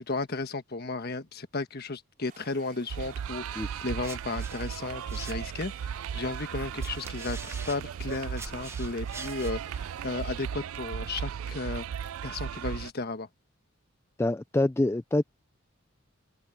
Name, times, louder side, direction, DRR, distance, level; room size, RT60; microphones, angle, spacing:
voice 1, 0.0-13.3, left 3 dB, 50° left, 1.4 m, -34 dB
Stream, 2.2-10.5, right 6 dB, 40° right, 4.2 m, -55 dB
sound 1, 2.9-12.9, right 8 dB, 80° right, 0.4 m, -36 dB
sound 2, 3.8-5.8 6.5-9.6, right 3 dB, 10° right, 1.0 m, -45 dB
voice 2, 14.2-15.2, left 2 dB, 10° left, 0.4 m, -25 dB
head